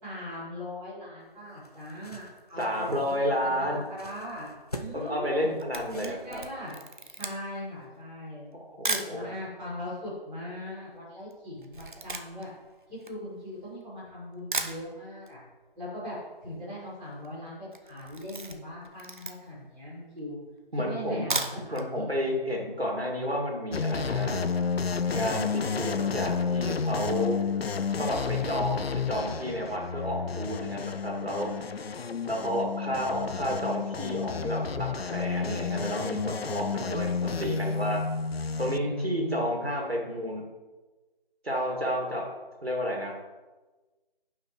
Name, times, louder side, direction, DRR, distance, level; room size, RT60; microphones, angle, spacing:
voice 1, 0.0-4.5 4.8-5.5 5.9-6.8 7.2-8.5 8.8-12.5 12.9-15.4 15.7-20.4 20.8-22.1 38.8-39.5, left 1 dB, 5° right, -16 dB, 2.2 m, -39 dB
sound 1, 1.2-6.7, left 1 dB, 40° left, 0.6 m, -46 dB
voice 2, 2.6-3.9 4.9-6.4 8.5-9.3 20.7-21.4 21.7-24.4 25.1-27.4 28.0-31.5 32.3-38.0 38.6-40.4 41.4-42.3 42.6-43.1, equal, 90° right, 0 dB, 2.3 m, -31 dB
Camera, 5.3-9.2 9.9-10.0 10.1-13.8 14.2-14.3 14.5-15.4 15.6-15.7 16.0-16.1 16.3-16.7 17.1-17.3 17.7-19.7 20.2-20.3 21.1-21.9 22.2-22.3 22.7-22.8, right 3 dB, 55° right, 0.8 m, -36 dB
sound 2, 23.7-38.8, left 5 dB, 85° left, 0.5 m, -31 dB
11.5 x 5.6 x 3.1 m, 1.2 s
figure-of-eight pair, 165°, 30 cm